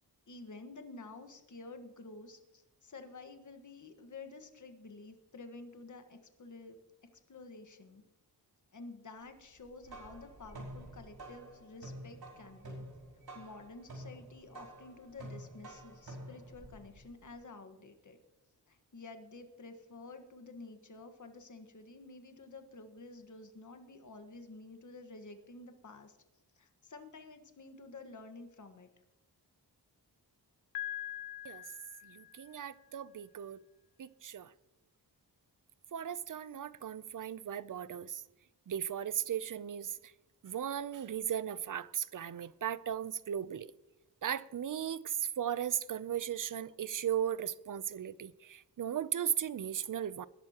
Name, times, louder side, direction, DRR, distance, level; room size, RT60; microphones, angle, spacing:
voice 1, 0.3-8.0 8.7-12.8 13.3-18.2 18.7-26.2 26.5-28.9, left 3 dB, 45° left, 1.5 m, -51 dB
sound 1, 9.6-17.3, right 1 dB, 65° right, 5.4 m, -49 dB
Piano, 30.7-32.7, left 13 dB, 65° left, 0.5 m, -43 dB
voice 2, 32.1-33.6 34.0-34.5 35.9-38.2 38.7-39.9 40.4-43.7 44.2-50.3, right 9 dB, 50° right, 0.6 m, -37 dB
20.5 x 11.5 x 2.9 m
wide cardioid pair, 85°, 40 cm